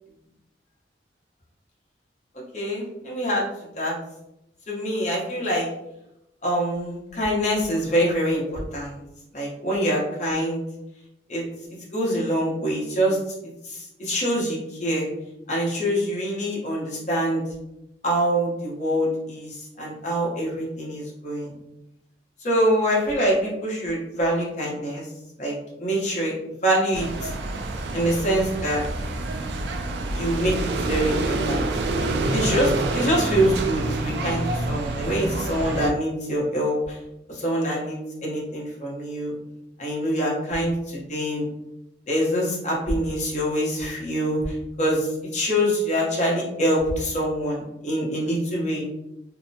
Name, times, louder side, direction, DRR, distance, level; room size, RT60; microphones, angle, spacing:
voice 1, 2.5-3.4 3.8-3.9 4.7-5.7 6.4-9.0 9.3-10.6 11.3-11.4 11.9-13.2 13.6-15.1 15.5-17.4 18.0-21.5 22.4-25.1 25.4-26.3 26.6-27.3 27.9-28.8 30.1-30.5 30.9-31.6 32.3-37.0 37.3-39.3 39.8-41.5 42.1-48.8, equal, 45° left, -4 dB, 0.8 m, -25 dB
sound 1, 26.9-35.9, right 2 dB, 70° right, 0.3 m, -27 dB
2.7 x 2.1 x 2.6 m, 0.87 s
head